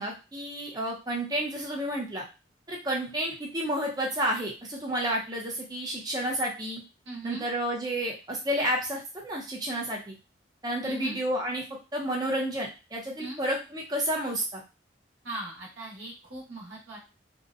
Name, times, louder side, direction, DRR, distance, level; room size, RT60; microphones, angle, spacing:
voice 1, 0.0-2.2 2.7-6.8 7.2-10.1 10.6-11.6 11.9-14.6, right 1 dB, 20° right, -2 dB, 0.5 m, -30 dB
voice 2, 7.0-7.4 10.8-11.2 13.2-13.4 15.2-17.0, right 1 dB, 80° right, -2 dB, 0.8 m, -39 dB
2.6 x 2.1 x 2.4 m, 0.30 s
head